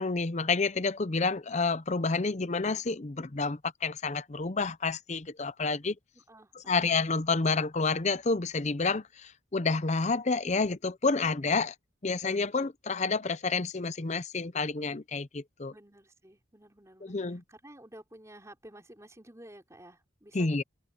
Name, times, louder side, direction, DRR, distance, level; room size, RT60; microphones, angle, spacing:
voice 1, 0.0-5.9 6.7-11.7 12.0-15.7 17.0-17.4 20.3-20.6, left 4 dB, 35° left, 0.6 m, -29 dB
voice 2, 6.1-6.9 15.7-20.6, right 1 dB, 15° right, 4.6 m, -52 dB
head